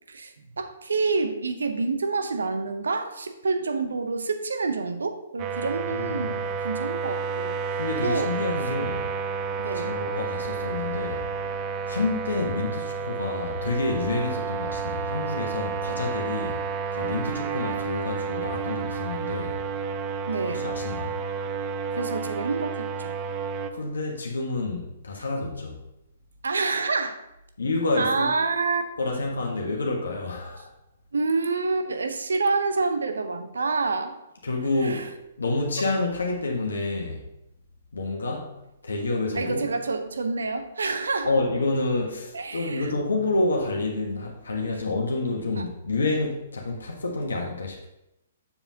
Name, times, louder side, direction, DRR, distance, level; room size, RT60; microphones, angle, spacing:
voice 1, 0.1-7.6 8.0-8.3 9.6-9.9 20.3-20.7 21.9-23.1 26.4-27.2 28.0-28.8 31.1-34.1 34.8-35.1 39.3-41.3 42.3-42.9 45.6-45.7, right 4 dB, 75° right, 8 dB, 0.7 m, -27 dB
sound 1, 5.4-23.7, right 5 dB, 30° right, 0.5 m, -31 dB
voice 2, 5.9-6.4 7.8-9.1 9.8-11.5 11.9-16.6 16.9-19.7 20.5-21.2 23.7-25.8 27.6-28.3 29.0-30.7 34.4-37.3 37.9-39.7 41.2-47.9, left 2 dB, 75° left, 0 dB, 1.2 m, -28 dB
7.1 x 6.9 x 2.8 m, 0.88 s
figure-of-eight pair, 125°, 0 cm